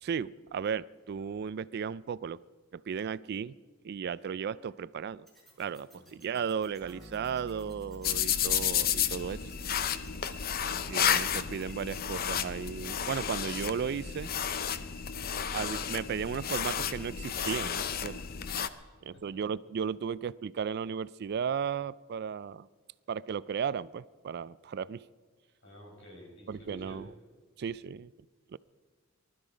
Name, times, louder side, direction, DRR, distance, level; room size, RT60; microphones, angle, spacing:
voice 1, 0.0-2.4 2.7-3.5 3.8-5.3 5.6-9.4 10.9-14.3 15.5-18.2 19.0-22.7 23.1-25.1 26.5-27.1 27.6-28.1 28.5-28.6, right 7 dB, 55° right, 19 dB, 0.3 m, -35 dB
sound 1, 5.3-12.2, right 2 dB, ahead, 5.0 m, -59 dB
sound 2, 6.8-13.6, equal, 20° right, 1.3 m, -52 dB
sound 3, 8.0-18.7, left 8 dB, 50° left, 0.6 m, -32 dB
voice 2, 10.5-11.2 18.8-19.2 25.6-27.1, left 1 dB, 65° left, -1 dB, 5.4 m, -51 dB
20.0 x 13.0 x 5.0 m, 1.5 s
head